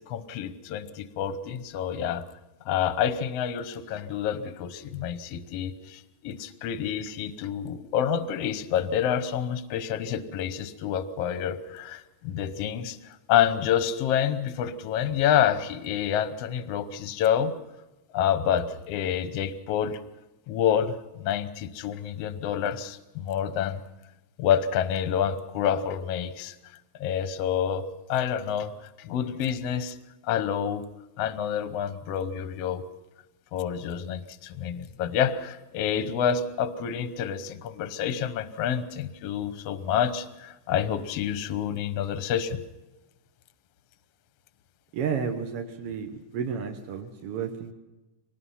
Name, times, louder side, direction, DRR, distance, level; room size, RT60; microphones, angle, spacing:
voice 1, 0.1-2.2 2.6-17.6 18.1-20.0 20.5-23.8 24.4-26.5 27.0-27.8 28.1-28.7 29.0-30.0 30.2-30.8 31.2-32.8 33.5-42.6, left 9 dB, 65° left, 11 dB, 1.6 m, -28 dB
voice 2, 44.9-47.7, right 6 dB, 60° right, 4 dB, 1.6 m, -32 dB
24.0 x 19.5 x 5.7 m, 1.0 s
omnidirectional pair, 4.1 m